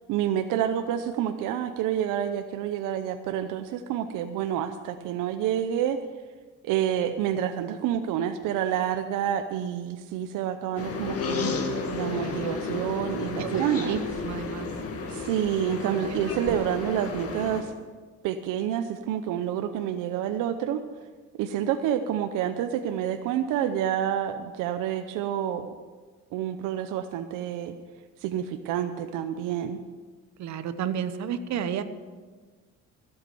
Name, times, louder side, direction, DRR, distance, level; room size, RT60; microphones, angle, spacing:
voice 1, 0.1-6.0 6.6-14.0 15.1-17.7 18.2-20.8 21.4-25.7 26.3-27.8 28.2-29.8, right 10 dB, 80° right, 8 dB, 0.8 m, -28 dB
sound 1, 10.8-17.6, left 4 dB, 50° left, 2.0 m, -32 dB
voice 2, 12.2-12.6 13.4-14.7 30.4-31.8, right 8 dB, 60° right, 11 dB, 1.0 m, -31 dB
15.5 x 8.1 x 7.1 m, 1.4 s
cardioid pair, 100°, 31 cm